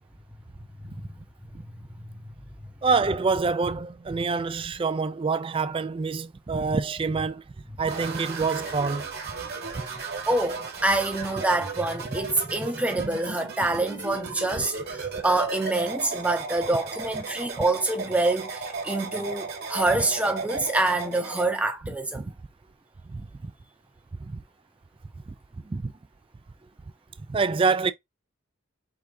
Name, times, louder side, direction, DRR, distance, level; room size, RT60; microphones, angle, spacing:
voice 1, 0.9-1.2 10.3-22.3, right 2 dB, 5° right, 0.7 m, -26 dB
voice 2, 2.8-7.4 7.8-9.1 22.1-22.3 23.1-23.5 24.2-24.4 25.6-25.9 27.3-27.9, right 4 dB, 25° right, 0.3 m, -26 dB
sound 1, 7.9-21.5, right 4 dB, 45° right, 1.4 m, -35 dB
4.8 x 3.4 x 2.6 m
head